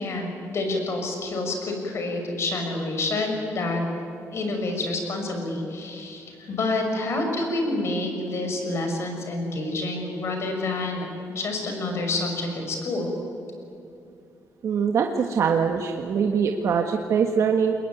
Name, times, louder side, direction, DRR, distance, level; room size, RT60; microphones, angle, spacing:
voice 1, 0.0-3.8 4.3-11.1 11.3-13.1, left 2 dB, 45° left, 3 dB, 6.1 m, -28 dB
voice 2, 14.6-17.7, right 6 dB, 55° right, 3 dB, 1.6 m, -23 dB
29.0 x 21.5 x 9.3 m, 2.6 s
cardioid pair, 140°, 6 cm